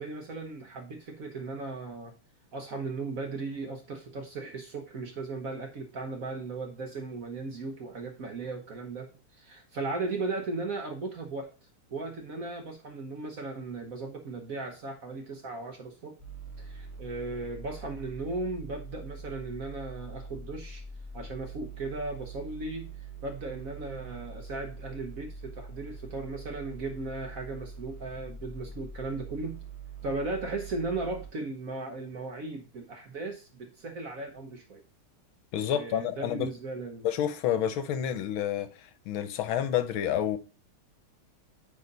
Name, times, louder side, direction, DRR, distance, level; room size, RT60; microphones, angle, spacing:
voice 1, 0.0-2.1 2.5-9.1 9.4-11.5 11.9-16.2 16.6-20.8 21.1-29.6 30.0-34.8 35.7-37.1, right 3 dB, 50° right, 1.1 m, -37 dB
sound 1, 16.2-31.3, right 4 dB, 20° right, 3.6 m, -44 dB
voice 2, 35.5-36.5 37.0-40.4, left 10 dB, 75° left, 1.5 m, -29 dB
9.2 x 3.9 x 3.9 m
omnidirectional pair, 2.3 m